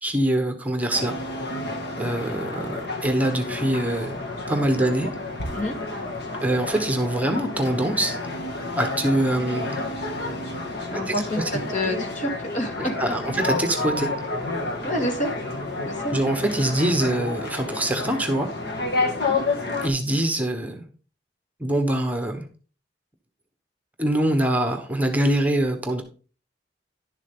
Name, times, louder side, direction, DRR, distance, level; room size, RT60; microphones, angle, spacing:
voice 1, 0.0-1.2 2.0-4.2 4.5-5.1 6.4-8.2 8.8-9.8 11.1-11.6 13.0-14.1 16.1-18.5 19.8-20.8 21.6-22.5 24.0-26.0, right 1 dB, 10° right, 6 dB, 1.1 m, -24 dB
sound 1, 0.9-19.9, left 2 dB, 65° left, 2.1 m, -30 dB
voice 2, 4.8-5.1 5.5-5.7 10.9-13.2 14.8-15.3 15.8-16.1 19.2-19.4, left 1 dB, 45° left, 3 dB, 2.3 m, -28 dB
11.0 x 7.3 x 3.8 m, 0.38 s
head